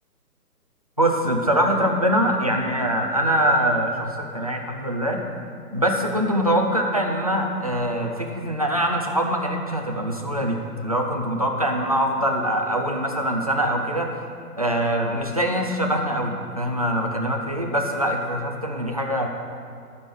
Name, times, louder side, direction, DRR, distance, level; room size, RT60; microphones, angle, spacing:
voice 1, 1.0-5.2 5.7-14.1 14.6-19.3, equal, 25° right, 1 dB, 0.4 m, -23 dB
12.5 x 5.4 x 6.0 m, 2.3 s
figure-of-eight pair, 145°, 47 cm